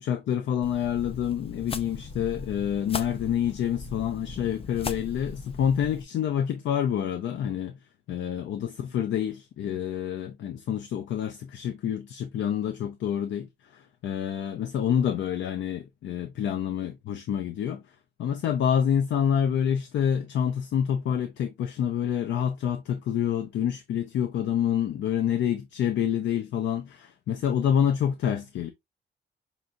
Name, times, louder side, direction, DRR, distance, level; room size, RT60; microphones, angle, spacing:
voice 1, 0.0-7.8 8.1-17.8 18.2-28.7, left 9 dB, 80° left, 0.5 m, -27 dB
sound 1, 0.6-6.0, left 4 dB, 30° left, 0.5 m, -38 dB
5.7 x 2.7 x 2.5 m
cardioid pair, 115°, 19 cm